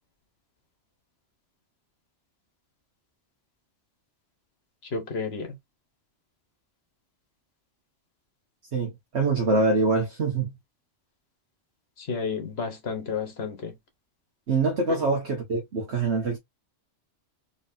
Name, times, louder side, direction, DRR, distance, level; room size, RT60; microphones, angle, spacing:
voice 1, 4.9-5.5 12.0-13.8 15.0-15.1, left 5 dB, 60° left, 1.4 m, -31 dB
voice 2, 8.7-10.5 14.5-16.4, right 3 dB, 65° right, 1.3 m, -24 dB
4.1 x 3.3 x 2.6 m
omnidirectional pair, 1.2 m